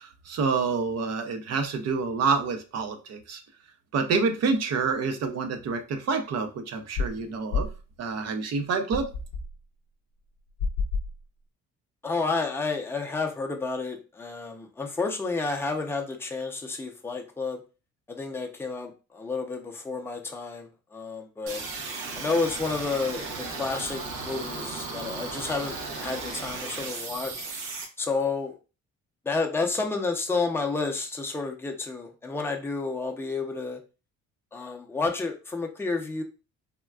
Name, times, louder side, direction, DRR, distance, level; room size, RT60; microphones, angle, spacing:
voice 1, 0.0-3.4 3.9-7.7 8.0-9.1, right 4 dB, 60° right, 7 dB, 0.5 m, -27 dB
sound 1, 7.0-7.2 7.5-7.8 8.9-9.5 10.6-11.2, left 4 dB, 80° left, 0.6 m, -29 dB
voice 2, 12.0-17.6 18.1-21.6 22.2-27.5 28.0-28.5 29.2-33.8 34.5-36.2, left 3 dB, 10° left, 2 dB, 0.5 m, -30 dB
sound 2, 21.5-27.8, right 3 dB, 85° right, 0.8 m, -35 dB
3.5 x 2.2 x 2.2 m, 0.32 s
cardioid pair, 90°, 30 cm